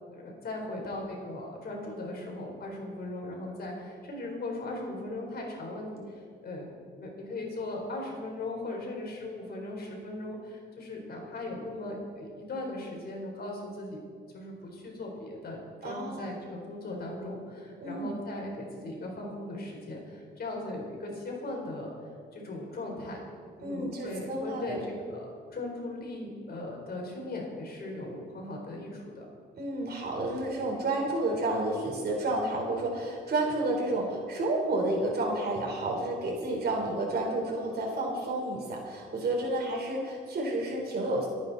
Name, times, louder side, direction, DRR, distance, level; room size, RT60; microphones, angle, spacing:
voice 1, 0.1-6.7 6.9-14.0 14.3-21.9 22.3-23.2 23.6-24.8 25.0-29.2, left 2 dB, 50° left, 0 dB, 4.0 m, -38 dB
voice 2, 15.8-16.4 17.8-18.2 23.6-24.8 29.6-41.3, right 2 dB, 55° right, -1 dB, 4.0 m, -30 dB
27.5 x 9.3 x 4.1 m, 2.1 s
cardioid pair, 90°, 20 cm